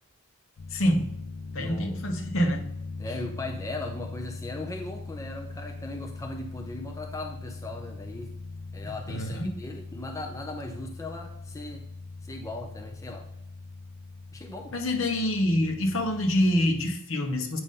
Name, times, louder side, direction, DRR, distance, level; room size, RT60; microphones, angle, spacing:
sound 1, 0.6-17.0, left 3 dB, 85° left, 0.5 m, -41 dB
voice 1, 0.7-1.1 1.5-2.6 9.1-9.5 14.7-17.6, left 1 dB, 60° left, 4 dB, 1.0 m, -26 dB
voice 2, 1.6-2.0 3.0-8.3 8.7-11.9 12.2-13.3 14.3-14.8, left 2 dB, 15° left, 2 dB, 0.5 m, -38 dB
8.1 x 5.3 x 3.7 m, 0.77 s
head